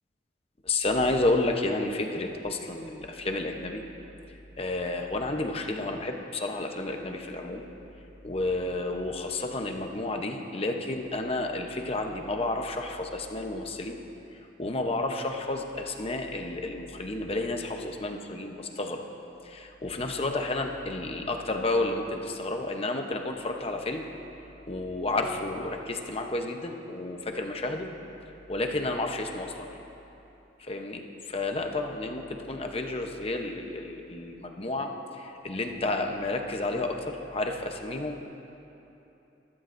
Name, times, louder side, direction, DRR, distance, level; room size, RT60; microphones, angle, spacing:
voice 1, 0.6-3.8 4.6-7.7 8.2-14.0 14.6-19.0 19.4-24.0 24.7-27.9 28.5-29.7 30.6-38.2, left 2 dB, 35° left, 4 dB, 0.8 m, -31 dB
21.5 x 12.5 x 2.6 m, 3.0 s
head